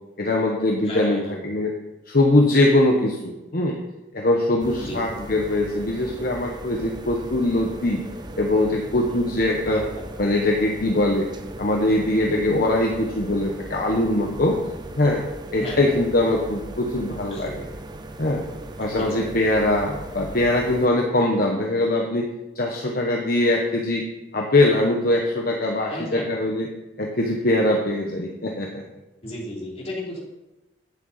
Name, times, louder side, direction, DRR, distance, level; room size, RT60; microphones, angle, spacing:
voice 1, 0.2-1.7 2.1-3.8 4.1-8.0 8.4-9.8 10.2-11.3 11.6-14.6 15.0-15.2 15.5-17.5 18.2-18.4 18.8-22.3 22.5-24.0 24.3-26.7 27.0-28.8, left 1 dB, 50° left, 0 dB, 1.1 m, -22 dB
voice 2, 0.8-1.4 4.8-5.0 9.7-10.0 15.6-16.0 17.1-17.6 19.0-19.3 25.9-26.3 29.2-30.2, left 1 dB, 35° left, -3 dB, 3.1 m, -34 dB
sound 1, 4.6-20.9, right 1 dB, 20° right, 0.7 m, -38 dB
11.5 x 9.2 x 4.1 m, 1.0 s
head